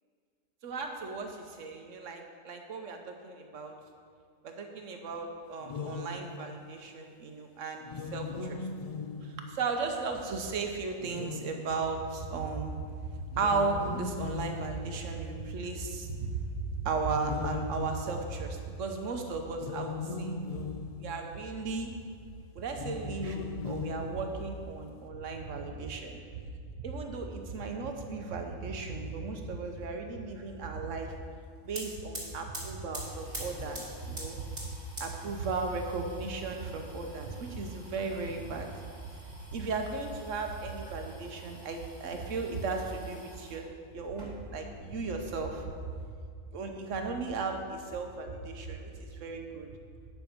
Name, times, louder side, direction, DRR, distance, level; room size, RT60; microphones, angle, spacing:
voice 1, 0.6-3.7 4.4-7.8 8.1-8.7 9.2-16.5 16.7-20.3 21.0-21.9 22.5-26.2 26.8-31.1 31.6-34.6 35.0-38.7 39.5-45.7 46.5-49.7, right 4 dB, 80° right, 4 dB, 1.3 m, -35 dB
sound 1, 5.6-6.7 7.8-9.8 11.0-12.1 13.3-15.4 17.2-18.6 19.5-21.5 22.7-24.7, left 4 dB, 60° left, 0.4 m, -39 dB
sound 2, 31.3-31.4 31.6-43.6 44.0-44.8 45.1-46.1, right 1 dB, 45° right, 2.8 m, -47 dB
9.6 x 6.0 x 5.2 m, 2.2 s
omnidirectional pair, 1.3 m